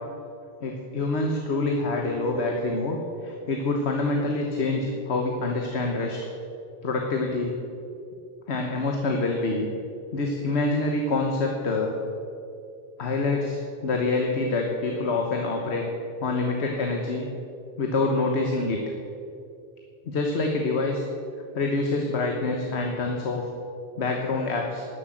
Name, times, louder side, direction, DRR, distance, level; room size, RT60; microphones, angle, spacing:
voice 1, 0.6-6.2 6.8-7.5 8.5-9.7 10.1-11.9 13.0-15.8 16.2-17.3 17.8-18.8 20.1-21.0 21.5-23.4 24.0-24.9, left 3 dB, 85° left, 2 dB, 1.4 m, -26 dB
12.0 x 7.8 x 7.8 m, 2.6 s
omnidirectional pair, 1.1 m